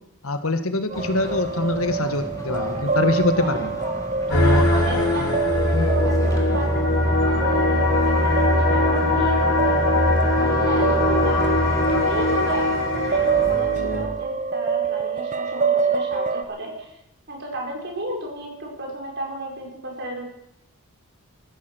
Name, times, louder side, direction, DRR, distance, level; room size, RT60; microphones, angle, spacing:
voice 1, 0.2-3.8 4.3-4.6 5.2-5.3 5.7-5.9, left 2 dB, 70° left, 8 dB, 1.6 m, -24 dB
sound 1, 0.9-13.6, left 1 dB, 15° left, 2.2 m, -36 dB
sound 2, 0.9-16.4, right 5 dB, 35° right, 0.8 m, -26 dB
sound 3, 4.3-14.0, left 2 dB, 50° left, 5.0 m, -21 dB
voice 2, 4.4-5.4 5.7-7.9 8.2-9.8 10.3-16.9 17.3-20.3, right 1 dB, 50° right, 0 dB, 5.2 m, -33 dB
15.0 x 14.5 x 6.2 m, 0.80 s
head